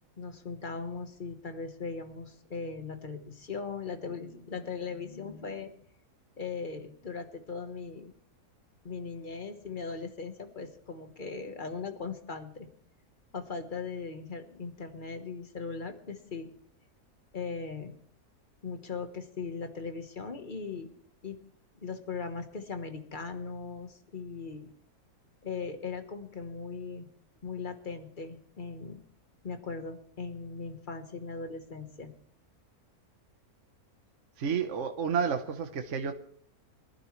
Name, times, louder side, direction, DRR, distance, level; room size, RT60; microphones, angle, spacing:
voice 1, 0.2-5.7 6.4-8.1 8.8-12.7 13.3-16.5 17.3-17.9 18.6-20.9 21.2-21.4 21.8-24.7 25.4-27.1 27.4-29.0 29.4-32.1, left 4 dB, 35° left, 7 dB, 1.3 m, -39 dB
voice 2, 34.4-36.2, right 6 dB, 55° right, 6 dB, 1.3 m, -30 dB
23.0 x 11.5 x 3.2 m, 0.63 s
omnidirectional pair, 1.6 m